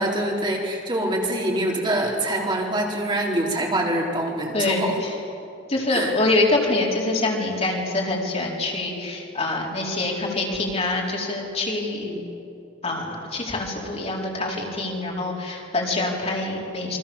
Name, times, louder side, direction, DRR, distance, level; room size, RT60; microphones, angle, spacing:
voice 1, 0.0-5.0 5.9-6.1 11.8-12.2, right 1 dB, 25° right, -2 dB, 4.0 m, -25 dB
voice 2, 4.5-5.1 5.7-12.1 12.8-17.0, left 2 dB, 35° left, -2 dB, 4.7 m, -25 dB
28.5 x 24.5 x 7.3 m, 2.8 s
head